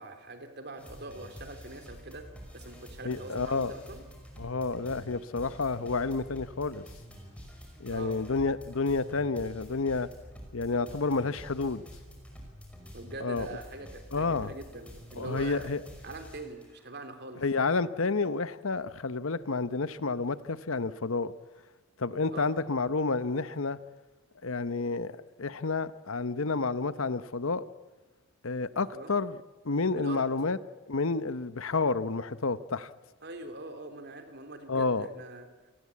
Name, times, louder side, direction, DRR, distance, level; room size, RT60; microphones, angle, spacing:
voice 1, 0.0-2.2 2.5-4.0 7.9-8.1 12.9-15.7 16.0-17.4 22.3-22.5 28.9-29.1 29.9-30.3 33.2-35.5, right 2 dB, 50° right, 6 dB, 3.5 m, -43 dB
sound 1, 0.8-16.9, equal, 5° left, 5.5 m, -48 dB
voice 2, 3.0-3.7 4.4-6.8 7.8-10.1 10.5-11.8 13.2-13.5 14.1-14.5 15.2-15.8 17.4-21.3 22.0-23.8 24.4-27.6 28.4-29.3 29.6-30.6 30.9-32.9 34.7-35.1, left 3 dB, 65° left, 15 dB, 0.9 m, -30 dB
28.0 x 19.5 x 8.6 m, 1.2 s
head